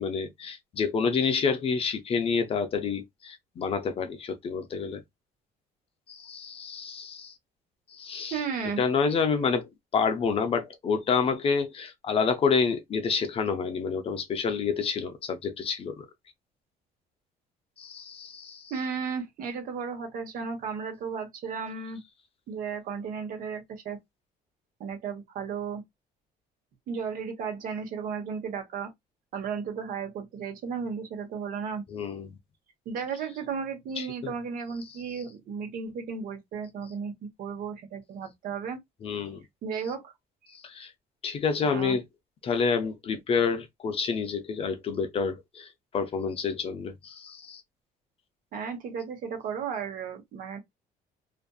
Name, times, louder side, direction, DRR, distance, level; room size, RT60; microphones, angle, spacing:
voice 1, 0.0-5.0 6.1-7.3 7.9-8.4 8.8-16.1 17.8-18.7 31.9-32.3 34.0-34.3 39.0-39.4 40.5-40.9 41.2-42.0 42.4-45.7 45.9-47.6, left 5 dB, 35° left, 0.5 m, -28 dB
voice 2, 8.3-8.8 18.7-22.0 22.5-24.0 24.8-25.8 26.9-28.9 29.3-31.8 32.9-38.8 39.6-40.1 41.6-42.0 48.5-50.6, right 6 dB, 60° right, 1.0 m, -34 dB
2.5 x 2.5 x 2.3 m
cardioid pair, 135°, 16 cm